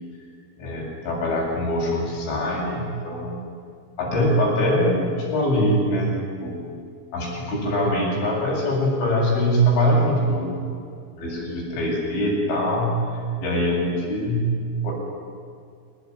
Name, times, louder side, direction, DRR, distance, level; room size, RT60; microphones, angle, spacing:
voice 1, 0.6-3.4 4.0-6.1 6.4-6.6 7.1-10.6 11.2-14.5 14.8-14.9, equal, 90° left, -3 dB, 10.5 m, -23 dB
26.5 x 21.0 x 9.8 m, 2.3 s
omnidirectional pair, 5.4 m